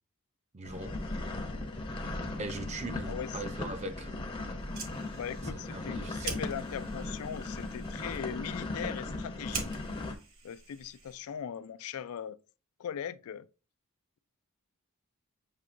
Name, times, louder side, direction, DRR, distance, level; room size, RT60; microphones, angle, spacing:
voice 1, 0.5-1.0 2.4-4.1 5.4-6.4, right 2 dB, 30° right, 0.5 m, -40 dB
sound 1, 0.6-10.1, left 2 dB, 25° left, 0.6 m, -38 dB
Fire, 4.5-11.4, right 4 dB, 65° right, 1.3 m, -45 dB
voice 2, 5.1-9.7 10.4-12.4 12.8-13.5, left 8 dB, 75° left, 0.3 m, -39 dB
7.1 x 2.7 x 2.5 m
head